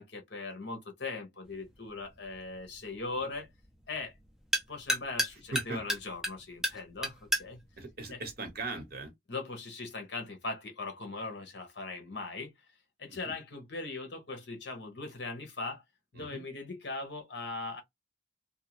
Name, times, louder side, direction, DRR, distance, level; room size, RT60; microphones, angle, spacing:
voice 1, 0.0-3.5 3.9-4.1 4.7-7.6 8.1-8.2 9.3-12.5 13.0-15.8 16.1-17.8, left 3 dB, 65° left, 1.0 m, -39 dB
sound 1, 1.4-9.1, equal, 5° right, 0.5 m, -37 dB
voice 2, 7.8-9.1 13.1-13.3 16.1-16.4, right 2 dB, 55° right, 1.0 m, -39 dB
2.6 x 2.1 x 2.9 m
head